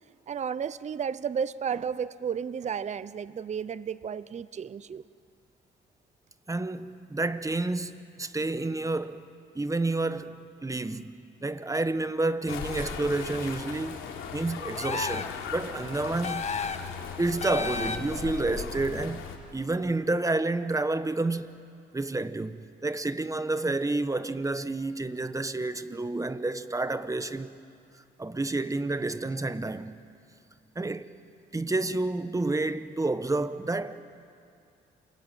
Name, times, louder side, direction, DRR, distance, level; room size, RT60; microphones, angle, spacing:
voice 1, 0.3-5.0, right 7 dB, 35° right, 0.6 m, -33 dB
voice 2, 6.5-9.3 9.5-16.5 17.2-21.6 21.9-27.5 28.2-29.9 30.7-31.1 31.5-34.0, right 2 dB, 15° right, 1.1 m, -30 dB
sound 1, 12.5-19.4, left 6 dB, 90° left, 3.3 m, -38 dB
sound 2, 14.7-15.4 16.2-16.9 17.4-18.2, left 5 dB, 35° left, 1.5 m, -32 dB
29.0 x 21.5 x 9.1 m
cardioid pair, 90°, 20 cm